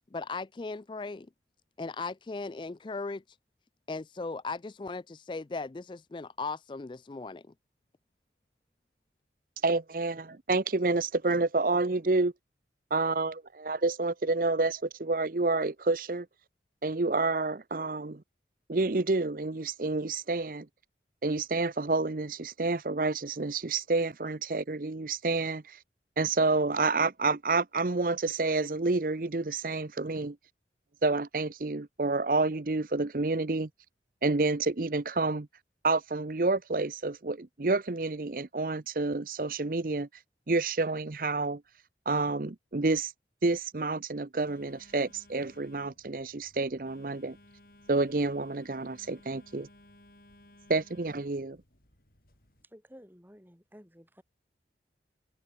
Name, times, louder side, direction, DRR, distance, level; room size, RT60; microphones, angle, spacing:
voice 1, 0.1-1.3 1.8-3.4 3.9-7.4, left 3 dB, 25° left, 0.4 m, -37 dB
voice 2, 9.6-12.3 12.9-16.3 16.8-18.2 18.7-20.6 21.2-25.8 26.2-30.3 31.0-33.7 34.2-35.5 35.8-40.1 40.5-41.6 42.1-43.1 43.4-47.4 47.9-49.7 50.7-51.6, right 3 dB, 50° right, 0.8 m, -29 dB
Telephone, 44.4-52.6, left 1 dB, 55° left, 6.5 m, -58 dB
voice 3, 52.7-54.2, equal, 10° right, 6.8 m, -53 dB
head